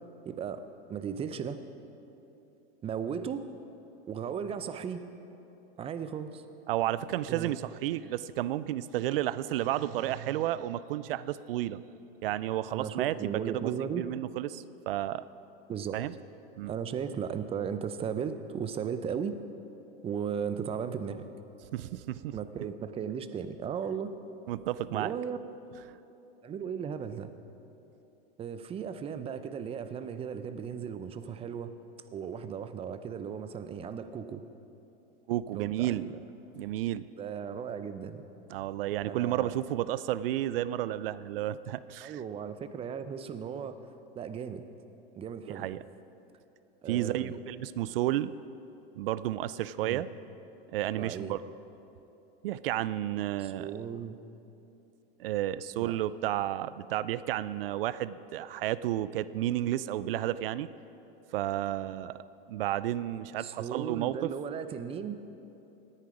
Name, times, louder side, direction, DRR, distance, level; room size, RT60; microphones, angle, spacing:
voice 1, 0.3-0.6 0.9-1.6 2.8-3.5 4.1-5.0 5.8-6.4 7.3-7.5 12.7-14.0 15.7-16.0 16.7-19.3 20.0-21.3 22.3-24.1 24.9-25.4 26.4-27.3 28.4-31.7 32.1-34.4 35.5-36.2 37.2-38.2 39.0-39.5 42.0-43.8 44.2-44.6 45.2-45.7 46.8-47.4 49.8-50.0 51.0-51.3 53.4-54.2 55.8-55.9 63.4-65.2, right 7 dB, 20° right, 11 dB, 0.6 m, -36 dB
voice 2, 6.7-11.8 12.2-15.2 15.9-16.1 16.6-16.7 21.7-22.4 24.5-25.1 25.9-26.0 35.3-36.0 36.6-37.0 38.5-42.2 45.5-45.8 46.9-48.3 49.0-50.1 50.7-51.5 52.4-53.8 55.2-60.7 61.3-62.2 62.5-64.3, right 13 dB, 70° right, 16 dB, 0.5 m, -32 dB
18.0 x 9.9 x 5.0 m, 2.9 s
hypercardioid pair, 125°, 30 cm